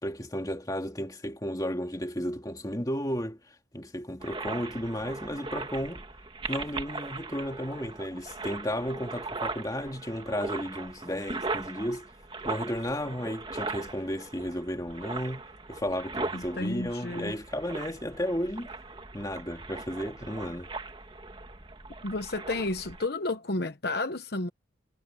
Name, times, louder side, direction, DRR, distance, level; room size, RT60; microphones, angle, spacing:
voice 1, 0.0-6.0 6.5-12.1 12.4-18.7 19.1-20.7, equal, 20° left, 2.3 m, -33 dB
sound 1, 4.2-23.1, right 3 dB, 25° right, 1.8 m, -39 dB
voice 2, 16.3-17.3 22.0-24.5, left 2 dB, 55° left, 1.0 m, -32 dB
head